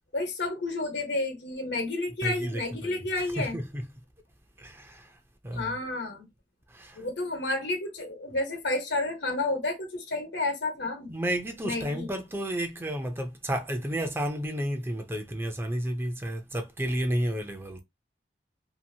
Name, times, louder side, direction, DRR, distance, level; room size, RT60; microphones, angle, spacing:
voice 1, 0.1-3.6 5.5-6.3 6.9-11.1 11.6-12.1, left 2 dB, 85° left, 1.1 m, -31 dB
voice 2, 2.2-3.9 4.6-5.2 5.4-5.7 6.7-7.0 11.1-17.8, equal, 15° right, 0.5 m, -32 dB
2.8 x 2.5 x 2.7 m
head